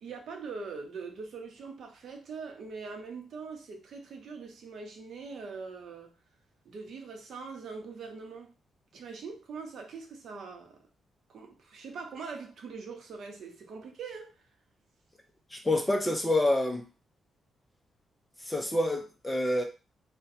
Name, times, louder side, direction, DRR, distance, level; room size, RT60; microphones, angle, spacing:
voice 1, 0.0-6.1 6.6-8.5 8.9-10.8 11.3-14.3, right 4 dB, 60° right, 0.7 m, -42 dB
voice 2, 15.5-16.8 18.5-19.6, left 1 dB, 10° left, 0.5 m, -27 dB
2.6 x 2.1 x 4.0 m
wide cardioid pair, 165°, 0 cm